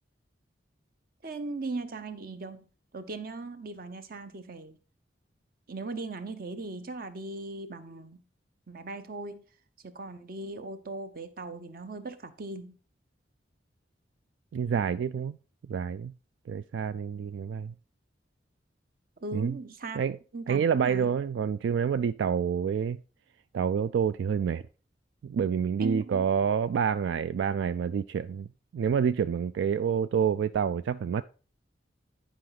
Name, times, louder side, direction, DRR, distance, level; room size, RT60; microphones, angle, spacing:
voice 1, 1.2-2.6 2.9-4.8 5.7-8.2 8.7-9.4 9.8-12.8 19.2-20.0 20.3-21.1 25.8-26.3, right 3 dB, 50° right, 0.8 m, -38 dB
voice 2, 14.5-15.4 15.7-16.1 16.5-17.7 19.3-19.6 19.9-20.2 20.5-23.0 23.5-24.6 25.2-28.5 28.7-31.2, right 7 dB, 80° right, 0.3 m, -28 dB
10.5 x 5.1 x 4.0 m
head